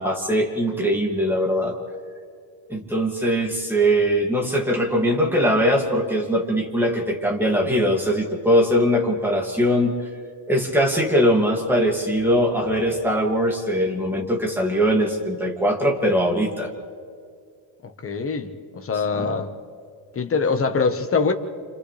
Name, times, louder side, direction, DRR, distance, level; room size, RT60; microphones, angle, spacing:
voice 1, 0.0-1.8 2.7-10.0 10.5-16.7 19.2-19.3, equal, 5° right, -1 dB, 2.4 m, -21 dB
voice 2, 17.8-19.5 20.1-21.3, left 4 dB, 30° left, 6 dB, 1.3 m, -23 dB
29.0 x 27.0 x 3.4 m, 2.2 s
cardioid pair, 155°, 48 cm